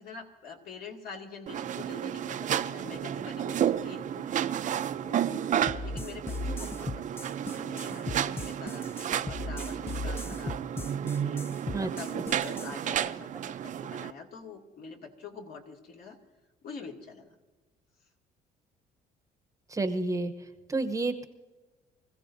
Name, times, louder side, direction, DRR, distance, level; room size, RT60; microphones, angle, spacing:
voice 1, 0.0-4.3 5.0-5.5 5.8-10.6 11.1-11.5 11.8-16.2 16.6-17.3, left 4 dB, 60° left, 1 dB, 2.4 m, -45 dB
sound 1, 1.5-14.1, right 9 dB, 50° right, 0.6 m, -32 dB
sound 2, 5.7-12.8, left 2 dB, 15° left, 0.4 m, -37 dB
voice 2, 19.7-20.3 20.7-21.3, right 2 dB, 20° right, 7 dB, 0.9 m, -29 dB
25.0 x 15.5 x 2.7 m, 1.2 s
cardioid pair, 110°, 17 cm